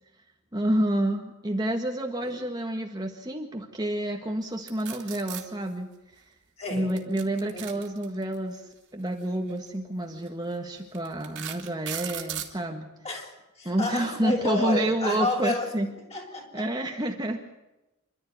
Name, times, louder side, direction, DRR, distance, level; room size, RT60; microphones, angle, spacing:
voice 1, 0.5-5.9 6.2-6.3 6.7-12.9 13.6-15.9 16.5-17.4, right 1 dB, 20° right, 2 dB, 1.6 m, -29 dB
sound 1, 4.7-5.4 6.9-8.3 9.5-9.7 10.3-10.4 10.9-12.5, right 11 dB, 60° right, 3.0 m, -36 dB
voice 2, 6.6-6.9 7.5-7.6 13.0-15.7 16.1-16.7, left 2 dB, 30° left, 1 dB, 5.9 m, -30 dB
27.5 x 12.5 x 9.5 m, 0.99 s
head